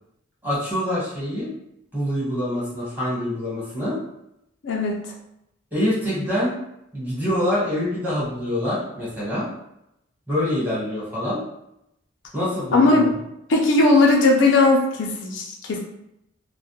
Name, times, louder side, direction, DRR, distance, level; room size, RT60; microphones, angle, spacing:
voice 1, 0.4-1.5 1.9-4.0 5.7-6.6 6.9-9.5 10.3-11.4 12.3-13.2, left 1 dB, 10° right, -9 dB, 1.1 m, -25 dB
voice 2, 4.6-5.0 12.7-13.1 13.5-15.8, left 2 dB, 65° left, 0 dB, 0.4 m, -18 dB
2.2 x 2.1 x 2.8 m, 0.81 s
head